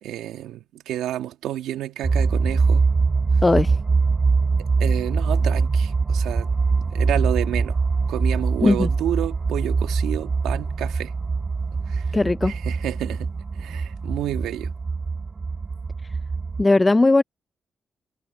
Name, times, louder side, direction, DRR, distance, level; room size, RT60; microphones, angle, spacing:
voice 1, 0.0-2.9 4.6-6.5 6.9-7.8 8.1-11.1 11.9-12.1 12.4-14.7, right 12 dB, 85° right, 2.2 m, -30 dB
sound 1, 2.0-16.6, right 4 dB, 45° right, 2.3 m, -23 dB
voice 2, 3.4-3.8 8.6-8.9 12.1-12.5 16.6-17.2, left 2 dB, 25° left, 0.7 m, -17 dB
supercardioid pair, 50°, 0 cm